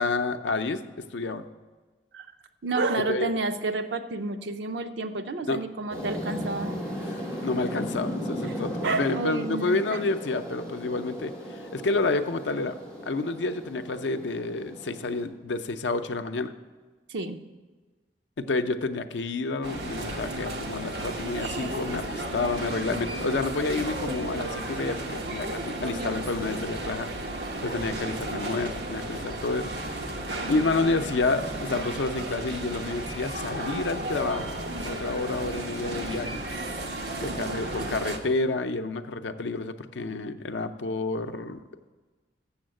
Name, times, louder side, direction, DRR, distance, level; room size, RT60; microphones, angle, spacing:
voice 1, 0.0-1.4 3.1-3.3 5.5-5.6 7.4-12.8 13.1-16.5 18.4-27.1 27.6-29.7 30.5-34.6 34.8-36.4 37.2-41.6, left 3 dB, 85° left, 9 dB, 0.5 m, -29 dB
voice 2, 2.6-6.8 8.8-10.0 17.1-17.4 36.5-36.9 37.3-38.0, right 3 dB, 85° right, 7 dB, 0.6 m, -30 dB
sound 1, 5.9-15.2, equal, 15° right, 2.0 m, -36 dB
sound 2, 19.6-38.2, right 1 dB, 65° right, 1.0 m, -34 dB
7.2 x 7.1 x 7.5 m, 1.3 s
head